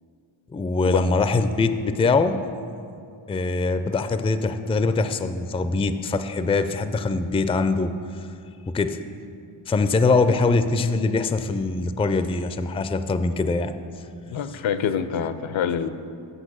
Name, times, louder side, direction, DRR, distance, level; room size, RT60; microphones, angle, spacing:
voice 1, 0.5-2.4 3.3-7.9 8.7-9.0 9.7-13.7, left 3 dB, 15° left, 10 dB, 0.3 m, -23 dB
voice 2, 14.3-15.9, left 8 dB, 70° left, 12 dB, 0.6 m, -26 dB
8.0 x 5.9 x 6.2 m, 2.4 s
cardioid pair, 55°, 49 cm